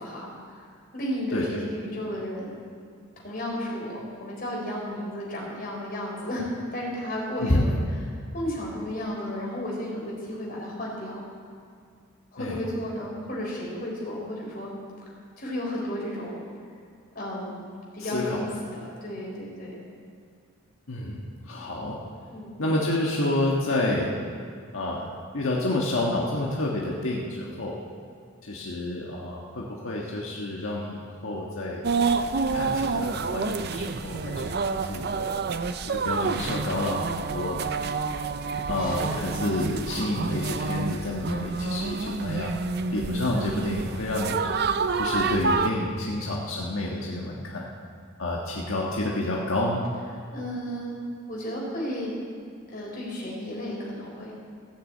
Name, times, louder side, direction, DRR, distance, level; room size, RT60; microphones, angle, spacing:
voice 1, 0.0-2.5 3.2-7.8 8.3-11.2 12.3-14.7 15.4-16.4 17.1-17.6 17.9-19.8 22.3-22.6 38.7-39.2 50.3-51.0 51.3-52.1 52.7-54.3, left 1 dB, 45° left, -4 dB, 4.1 m, -33 dB
voice 2, 1.3-1.6 7.4-7.7 12.4-12.6 18.0-18.4 20.9-22.0 22.6-24.1 24.7-25.1 25.3-27.7 28.4-31.8 32.5-35.4 35.9-37.6 38.7-42.5 42.9-44.4 45.0-47.7 48.2-49.9, left 1 dB, 85° left, -3 dB, 1.5 m, -29 dB
sound 1, 31.8-45.7, right 4 dB, 50° right, 0.5 m, -28 dB
16.5 x 6.9 x 8.4 m, 2.2 s
head